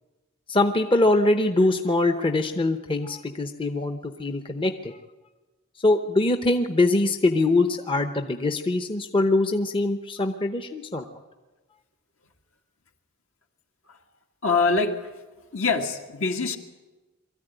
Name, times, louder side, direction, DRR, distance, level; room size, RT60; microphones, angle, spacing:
voice 1, 0.5-4.9 5.8-11.0, left 2 dB, 25° left, 6 dB, 0.8 m, -23 dB
voice 2, 14.4-15.1 15.5-16.6, left 4 dB, 70° left, 3 dB, 2.0 m, -24 dB
23.5 x 14.0 x 9.1 m, 1.2 s
head